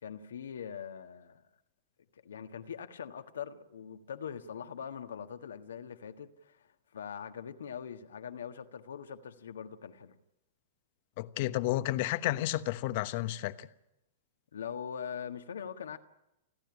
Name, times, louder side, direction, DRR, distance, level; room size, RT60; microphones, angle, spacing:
voice 1, 0.0-1.5 2.2-6.7 6.9-10.1 14.5-16.0, left 7 dB, 70° left, 1.5 m, -42 dB
voice 2, 11.2-13.7, left 16 dB, 50° left, 1.1 m, -31 dB
29.5 x 12.0 x 9.9 m
figure-of-eight pair, 105°, 0 cm